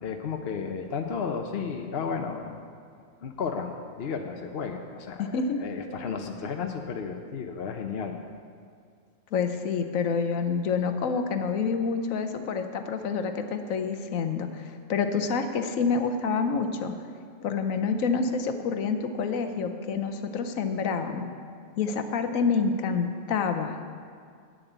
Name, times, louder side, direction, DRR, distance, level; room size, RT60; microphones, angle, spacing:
voice 1, 0.0-2.6 3.2-5.3 5.6-8.2, left 5 dB, 55° left, 4 dB, 0.9 m, -33 dB
voice 2, 5.2-5.6 9.3-16.9 17.4-21.3 21.8-23.8, left 5 dB, 85° left, 7 dB, 1.2 m, -28 dB
9.3 x 7.3 x 8.0 m, 2.2 s
omnidirectional pair, 1.4 m